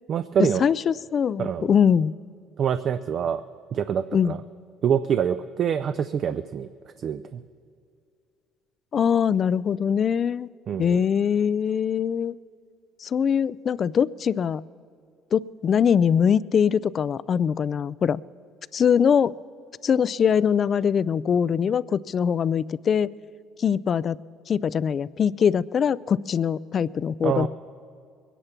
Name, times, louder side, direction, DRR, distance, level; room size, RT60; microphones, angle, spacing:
voice 1, 0.1-0.7 1.4-1.7 2.6-3.4 3.7-4.4 4.8-6.7 7.0-7.4 10.7-11.0 27.2-27.5, right 8 dB, 55° right, 11 dB, 0.4 m, -25 dB
voice 2, 0.6-2.1 4.1-4.3 8.9-10.5 10.8-12.3 13.0-14.6 15.3-18.2 18.7-19.3 19.8-23.1 23.6-24.2 24.5-27.5, left 7 dB, 45° left, 20 dB, 0.3 m, -22 dB
22.0 x 10.0 x 5.8 m, 2.3 s
supercardioid pair, 80°, 0 cm